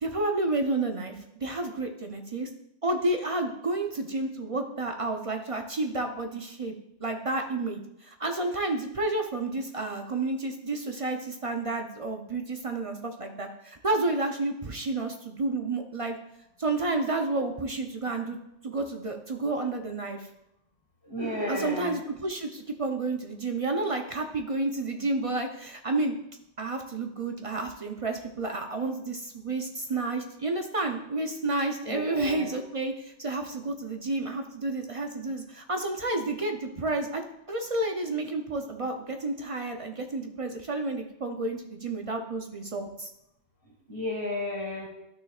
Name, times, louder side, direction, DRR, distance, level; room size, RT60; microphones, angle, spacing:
voice 1, 0.0-2.5 2.8-6.8 7.0-16.2 16.6-18.4 18.6-20.3 21.5-26.1 26.6-43.1, right 2 dB, 40° right, 4 dB, 0.5 m, -30 dB
voice 2, 21.0-22.0 31.9-32.5 43.9-44.9, left 1 dB, 20° left, -3 dB, 1.5 m, -32 dB
12.0 x 6.3 x 2.4 m, 0.83 s
omnidirectional pair, 1.3 m